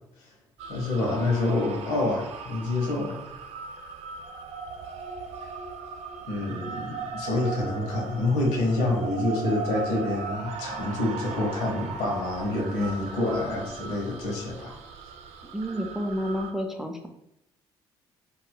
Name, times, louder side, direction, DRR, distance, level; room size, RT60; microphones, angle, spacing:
sound 1, 0.6-16.5, right 4 dB, 75° right, 0.4 m, -38 dB
voice 1, 0.7-3.2 6.3-14.7, left 2 dB, 80° left, -1 dB, 0.9 m, -27 dB
voice 2, 15.5-17.1, equal, 5° right, 3 dB, 0.5 m, -30 dB
4.1 x 2.3 x 2.2 m, 0.82 s
hypercardioid pair, 55°, 11 cm